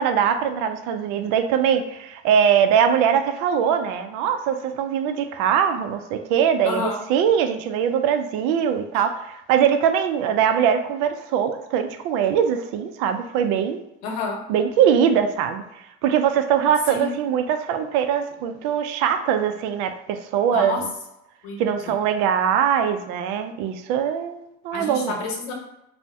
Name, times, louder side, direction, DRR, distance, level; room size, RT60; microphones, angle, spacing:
voice 1, 0.0-13.8 14.5-20.9 21.6-25.2, right 8 dB, 75° right, 8 dB, 0.5 m, -22 dB
voice 2, 6.6-7.0 14.0-14.4 16.9-17.1 20.5-20.8 21.4-21.6 24.7-25.5, left 4 dB, 80° left, 1 dB, 0.9 m, -29 dB
2.6 x 2.1 x 3.3 m, 0.85 s
supercardioid pair, 90°, 30 cm